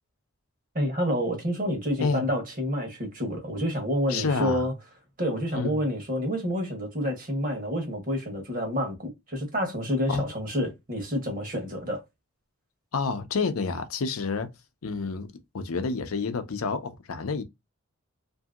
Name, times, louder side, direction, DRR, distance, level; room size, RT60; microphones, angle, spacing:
voice 1, 0.7-4.7 5.2-12.0, equal, 40° right, 1.0 m, -28 dB
voice 2, 4.1-4.7 5.5-5.8 10.1-10.2 12.9-14.5 14.8-15.3 15.5-17.4, left 4 dB, 80° left, 0.6 m, -29 dB
2.7 x 2.6 x 2.3 m
head